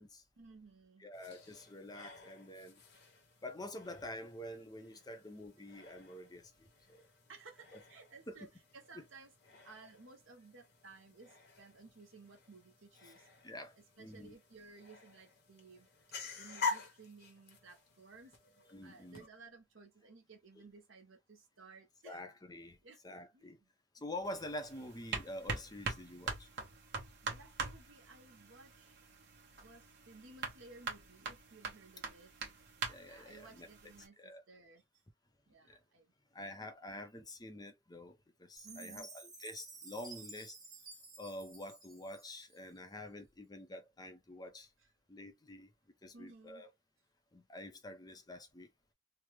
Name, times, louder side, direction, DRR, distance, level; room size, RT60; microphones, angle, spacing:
voice 1, 0.4-1.1 7.3-8.5 8.7-9.3 9.6-13.3 13.8-15.9 16.4-22.2 22.8-23.0 23.3-23.7 27.2-28.9 29.6-32.3 33.0-34.8 35.5-36.1 38.6-39.1 46.1-46.6, right 3 dB, 70° right, 1.2 m, -57 dB
voice 2, 1.0-2.8 3.4-7.1 7.7-7.8 8.3-8.5 8.9-9.0 13.0-13.1 13.4-14.3 18.7-19.2 22.0-22.8 23.0-23.6 23.9-26.5 32.9-33.7 34.2-34.4 35.6-35.8 36.3-40.6 41.2-44.7 45.1-45.7 46.0-46.7 47.3-48.7, left 1 dB, 20° left, 0.5 m, -47 dB
sound 1, 1.1-19.3, left 4 dB, 50° left, 0.9 m, -48 dB
sound 2, 24.2-34.1, right 4 dB, 55° right, 1.0 m, -44 dB
Chime, 38.6-42.8, right 3 dB, 20° right, 1.0 m, -53 dB
3.3 x 2.1 x 3.0 m
head